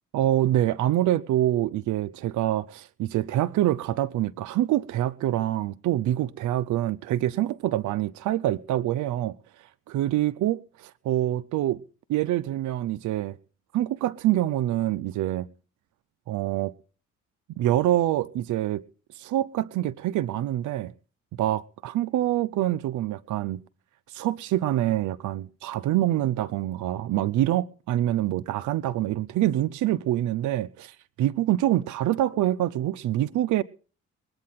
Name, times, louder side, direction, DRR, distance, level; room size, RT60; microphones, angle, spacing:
voice 1, 0.1-11.8 12.1-13.4 13.7-15.5 16.3-16.7 17.6-18.8 19.1-20.9 21.4-23.6 24.1-33.6, right 13 dB, 75° right, 0.6 m, -26 dB
21.0 x 8.6 x 5.8 m
cardioid pair, 90°, 30 cm